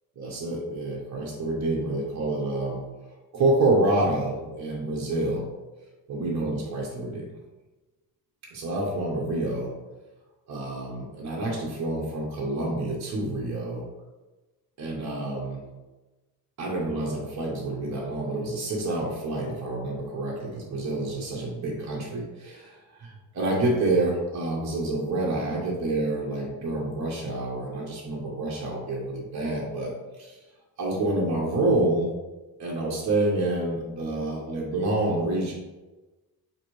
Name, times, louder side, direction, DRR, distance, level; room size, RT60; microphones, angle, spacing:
voice 1, 0.2-2.8 3.3-5.5 6.1-7.3 8.5-9.7 10.5-13.8 14.8-15.6 16.6-30.4 30.8-32.1 32.6-35.5, right 2 dB, 50° right, -3 dB, 0.9 m, -28 dB
5.6 x 2.7 x 3.1 m, 1.1 s
cardioid pair, 120°, 37 cm